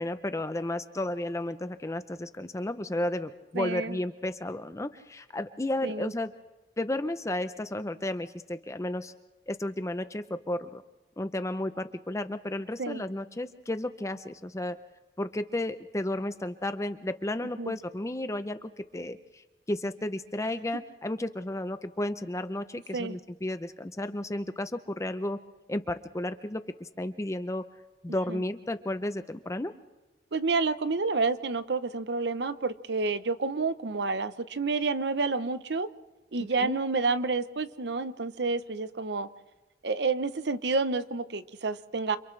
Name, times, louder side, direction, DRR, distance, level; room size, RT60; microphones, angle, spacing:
voice 1, 0.0-6.3 6.8-9.1 9.5-10.8 11.2-14.8 15.2-25.4 25.7-27.6 28.0-29.7 36.6-36.8, left 1 dB, 15° left, 10 dB, 0.6 m, -33 dB
voice 2, 3.5-4.0 5.8-6.1 12.8-13.0 17.6-17.7 22.9-23.2 28.3-28.4 30.3-35.9 36.3-39.3 39.8-42.2, right 4 dB, 75° right, 13 dB, 0.8 m, -29 dB
29.5 x 26.5 x 3.3 m, 1.1 s
head